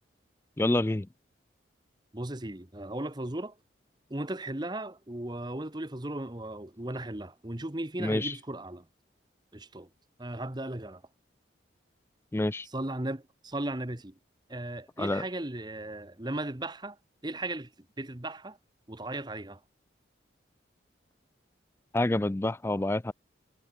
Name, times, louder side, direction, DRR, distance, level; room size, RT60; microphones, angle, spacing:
voice 1, 0.6-1.1 8.0-8.3 12.3-12.7 15.0-15.2 21.9-23.1, left 2 dB, 15° left, 0.3 m, -27 dB
voice 2, 2.1-3.6 4.1-8.9 9.5-9.9 10.2-11.0 12.6-14.2 14.5-17.0 17.2-17.7 18.0-18.6 18.9-19.6, right 1 dB, 20° right, 1.1 m, -36 dB
head